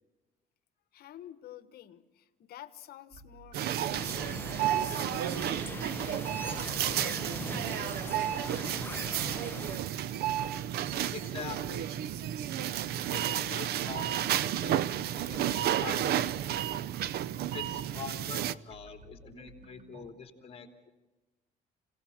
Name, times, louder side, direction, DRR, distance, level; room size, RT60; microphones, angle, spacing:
voice 1, 0.9-4.5 4.8-9.7, left 11 dB, 65° left, 13 dB, 1.3 m, -50 dB
sound 1, 3.1-20.1, right 3 dB, 45° right, 2.2 m, -52 dB
sound 2, 3.5-18.5, right 11 dB, 70° right, 0.7 m, -32 dB
sound 3, 3.9-9.8, left 3 dB, 10° left, 0.8 m, -42 dB
voice 2, 11.1-11.9 13.1-14.2 14.6-14.9 15.1-16.4 17.5-20.9, left 6 dB, 35° left, 5 dB, 3.2 m, -44 dB
26.5 x 18.0 x 7.2 m, 1.2 s
cardioid pair, 110°, 17 cm